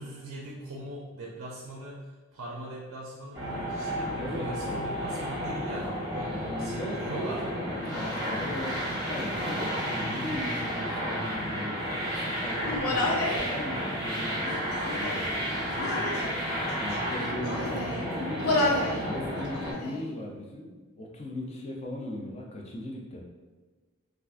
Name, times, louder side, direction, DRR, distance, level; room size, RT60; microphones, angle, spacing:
voice 1, 0.0-2.0 2.3-7.5 15.7-17.0, right 1 dB, 85° right, -3 dB, 0.5 m, -41 dB
sound 1, 3.3-19.7, equal, 20° right, 0.6 m, -32 dB
voice 2, 4.2-4.8 6.3-7.0 7.8-11.8 12.1-13.0 13.3-15.7 16.8-23.2, left 1 dB, 30° left, 0 dB, 0.4 m, -38 dB
Human voice, 12.6-13.5 14.4-15.3 15.7-16.4 17.1-18.0 18.4-19.0 19.3-20.0, left 2 dB, 90° left, 0.6 m, -30 dB
sound 2, 13.4-18.9, right 2 dB, 55° left, 1.0 m, -45 dB
3.5 x 2.4 x 2.4 m, 1.3 s
head